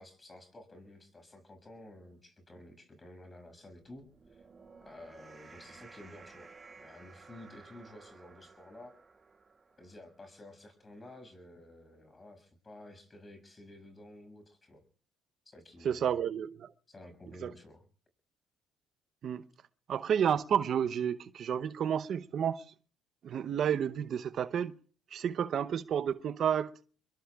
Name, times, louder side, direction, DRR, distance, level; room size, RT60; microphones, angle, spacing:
voice 1, 0.0-4.4 4.8-6.5 6.7-8.9 9.8-14.8 15.4-16.2 16.9-17.8, left 1 dB, 25° left, 6.5 m, -52 dB
sound 1, 3.9-10.4, right 4 dB, 30° right, 7.9 m, -56 dB
voice 2, 15.8-16.7 17.4-17.5 19.2-19.4 19.9-22.6 23.2-24.7 25.1-26.7, right 8 dB, 60° right, 0.8 m, -31 dB
27.0 x 22.5 x 2.4 m
supercardioid pair, 70°, 0 cm